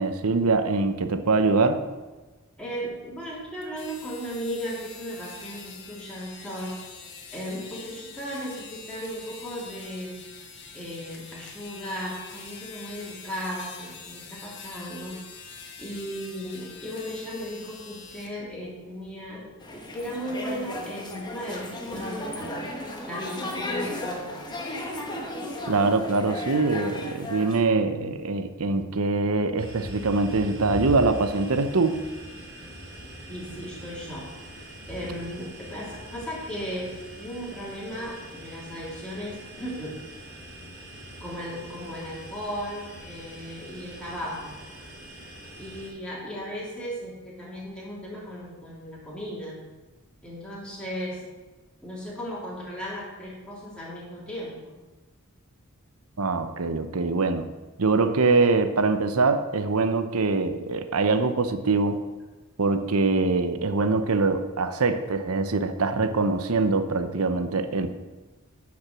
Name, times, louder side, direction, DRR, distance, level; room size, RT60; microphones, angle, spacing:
voice 1, 0.0-1.8 25.7-32.0 56.2-57.5 57.8-62.0 62.6-67.9, right 3 dB, 80° right, 9 dB, 0.8 m, -23 dB
voice 2, 2.6-6.8 7.3-10.2 10.7-15.2 15.8-22.6 23.0-24.5 33.3-40.0 41.2-44.6 45.6-49.7 50.2-51.3 51.8-54.8, equal, 5° left, -7 dB, 3.3 m, -36 dB
sound 1, 3.6-18.3, left 5 dB, 55° left, 1.6 m, -45 dB
sound 2, 19.6-27.6, left 1 dB, 20° left, 1.3 m, -35 dB
sound 3, 29.6-45.9, equal, 50° right, 2.8 m, -42 dB
10.5 x 6.0 x 6.2 m, 1.2 s
head